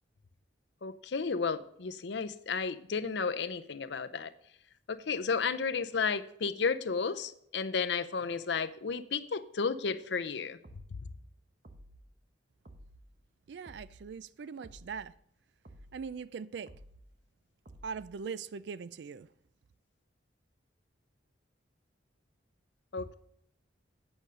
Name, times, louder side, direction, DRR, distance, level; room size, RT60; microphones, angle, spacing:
voice 1, 0.8-4.3 4.9-10.6 22.9-23.1, left 5 dB, 70° left, 0.6 m, -33 dB
sound 1, 10.6-11.0 11.6-12.0 12.6-13.0 13.6-14.0 14.6-15.0 15.6-16.0 16.7-17.1 17.7-18.1, right 1 dB, 45° right, 1.0 m, -53 dB
voice 2, 13.5-15.1 15.9-16.7 17.8-19.3, right 5 dB, 70° right, 0.4 m, -41 dB
9.0 x 6.4 x 5.3 m
head